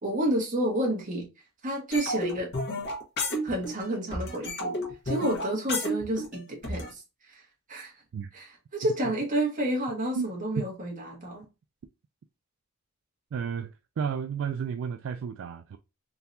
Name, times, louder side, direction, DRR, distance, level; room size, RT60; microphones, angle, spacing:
voice 1, 0.0-1.3 1.6-2.5 3.4-4.8 5.0-7.4 7.7-7.9 8.3-11.4, right 1 dB, 40° right, 1.5 m, -30 dB
sound 1, 1.9-3.9 4.1-6.9, left 1 dB, 50° left, 1.4 m, -31 dB
voice 2, 13.3-15.8, right 7 dB, 65° right, 0.3 m, -32 dB
3.8 x 2.7 x 2.6 m
head